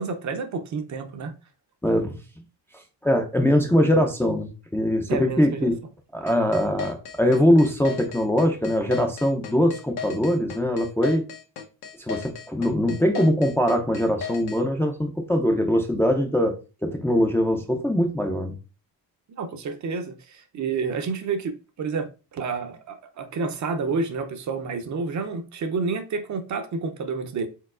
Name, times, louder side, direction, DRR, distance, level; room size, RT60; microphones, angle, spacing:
voice 1, 0.0-1.3 5.1-5.7 19.4-27.5, right 4 dB, 45° right, 0.6 m, -29 dB
voice 2, 1.8-2.2 3.0-5.7 6.1-11.2 12.0-16.5 16.8-18.5, equal, 5° left, 0.4 m, -22 dB
sound 1, 6.3-14.6, left 7 dB, 70° left, 1.0 m, -35 dB
4.5 x 3.9 x 2.4 m
cardioid pair, 135°, 40 cm